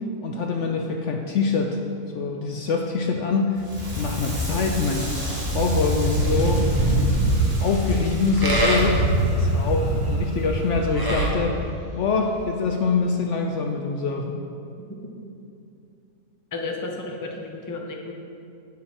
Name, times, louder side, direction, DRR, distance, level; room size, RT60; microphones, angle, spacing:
voice 1, 0.2-1.8 2.1-3.6 4.0-5.2 5.5-6.7 7.6-9.0 9.4-11.7 12.0-14.4, left 4 dB, 65° left, 3 dB, 0.8 m, -24 dB
Crackle, 3.5-12.5, left 1 dB, 50° right, 2.4 m, -31 dB
Livestock farm animals working animals, 5.4-11.3, right 2 dB, 15° right, 1.2 m, -23 dB
voice 2, 16.5-18.1, left 3 dB, 20° left, 1 dB, 0.5 m, -32 dB
8.3 x 7.2 x 4.5 m, 2.6 s
omnidirectional pair, 1.6 m